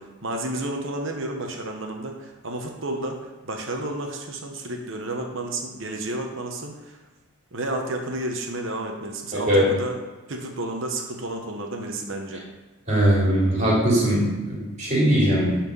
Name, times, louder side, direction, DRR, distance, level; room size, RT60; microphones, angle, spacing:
voice 1, 0.0-7.0 7.5-10.0 10.3-12.4, right 1 dB, 60° right, 3 dB, 1.1 m, -31 dB
voice 2, 9.3-9.7 12.9-15.6, right 1 dB, 35° right, -5 dB, 3.4 m, -20 dB
11.5 x 4.4 x 5.5 m, 1.1 s
head